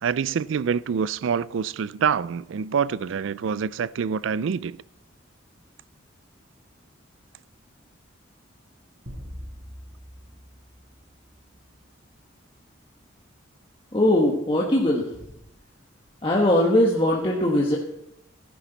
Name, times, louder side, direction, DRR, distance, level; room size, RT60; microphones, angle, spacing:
voice 1, 0.0-4.8, right 6 dB, 70° right, 0.4 m, -26 dB
sound 1, 9.1-11.6, equal, 55° right, 5.2 m, -42 dB
voice 2, 13.9-15.1 16.2-17.8, left 1 dB, 25° left, 1.2 m, -20 dB
16.0 x 10.0 x 4.0 m
head